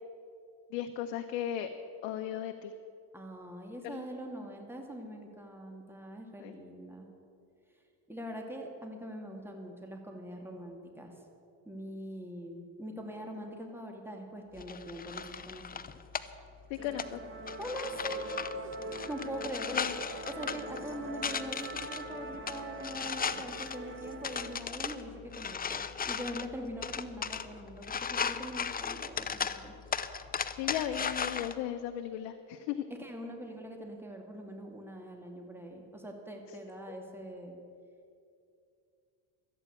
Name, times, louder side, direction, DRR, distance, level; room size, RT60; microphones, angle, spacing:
voice 1, 0.7-1.7 2.0-2.7 3.8-4.0 6.4-6.5 16.7-17.2 19.7-19.9 30.6-32.9, left 11 dB, 75° left, 6 dB, 0.9 m, -36 dB
voice 2, 3.1-7.1 8.1-11.1 11.6-15.8 17.6-18.6 19.1-19.9 20.3-29.7 33.0-37.6, equal, 5° right, 2 dB, 2.3 m, -42 dB
sound 1, 14.6-31.5, left 6 dB, 20° left, 0.6 m, -37 dB
Musical instrument, 16.8-24.6, right 2 dB, 25° right, 1.9 m, -43 dB
13.5 x 8.8 x 8.6 m, 2.5 s
supercardioid pair, 75°, 49 cm